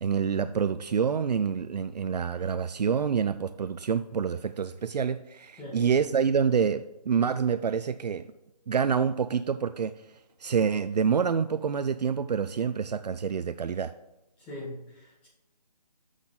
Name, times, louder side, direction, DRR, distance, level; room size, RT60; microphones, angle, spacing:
voice 1, 0.0-8.3 8.7-9.9 10.4-13.9, right 6 dB, 75° right, 12 dB, 0.4 m, -27 dB
voice 2, 14.4-15.3, left 1 dB, 5° left, -7 dB, 1.2 m, -41 dB
7.4 x 6.2 x 3.8 m, 0.92 s
figure-of-eight pair, 165°, 21 cm